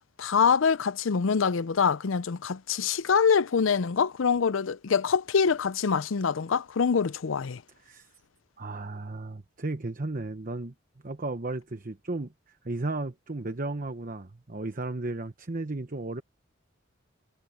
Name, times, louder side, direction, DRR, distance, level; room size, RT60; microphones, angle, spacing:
voice 1, 0.2-7.6, left 6 dB, 75° left, 0.5 m, -25 dB
voice 2, 8.6-10.7 11.0-12.3 12.6-16.2, right 2 dB, 45° right, 1.0 m, -34 dB
head